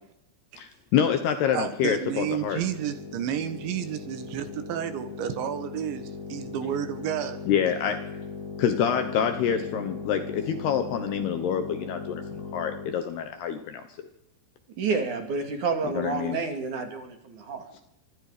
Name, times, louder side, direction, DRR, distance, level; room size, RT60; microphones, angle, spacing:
voice 1, 0.6-2.6 7.5-8.0 8.6-13.8 15.8-16.4, left 8 dB, 70° left, 8 dB, 2.8 m, -27 dB
voice 2, 1.5-7.4, right 10 dB, 70° right, 10 dB, 3.5 m, -31 dB
sound 1, 2.0-13.1, left 5 dB, 30° left, 8.4 m, -39 dB
voice 3, 14.8-17.7, right 4 dB, 45° right, 5 dB, 3.3 m, -29 dB
25.5 x 23.5 x 5.1 m, 0.80 s
omnidirectional pair, 5.8 m